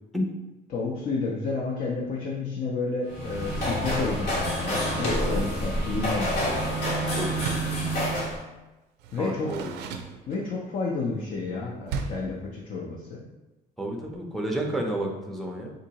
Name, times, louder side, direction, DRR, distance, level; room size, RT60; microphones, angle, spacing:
voice 1, 0.7-6.3 9.1-9.5 10.3-13.2, left 3 dB, 55° left, -3 dB, 0.6 m, -31 dB
sound 1, 3.1-8.4, equal, 75° left, 1.1 m, -27 dB
Door, 7.3-7.8 9.0-10.7 11.9-12.4, right 5 dB, 80° right, 0.4 m, -35 dB
voice 2, 9.2-9.7 13.8-15.7, right 1 dB, ahead, 1 dB, 0.5 m, -30 dB
3.8 x 2.6 x 2.8 m, 1.1 s
cardioid pair, 110°, 17 cm